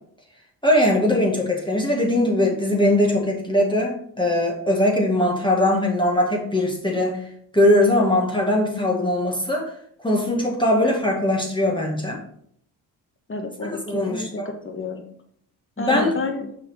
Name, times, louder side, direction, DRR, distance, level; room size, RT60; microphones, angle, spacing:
voice 1, 0.6-7.2 7.5-9.7 10.0-12.2 13.9-14.5 15.8-16.1, left 1 dB, 10° left, -1 dB, 2.0 m, -20 dB
voice 2, 13.3-15.1 15.8-16.5, left 3 dB, 30° left, 6 dB, 1.5 m, -30 dB
6.5 x 4.3 x 5.1 m, 0.65 s
supercardioid pair, 55°, 43 cm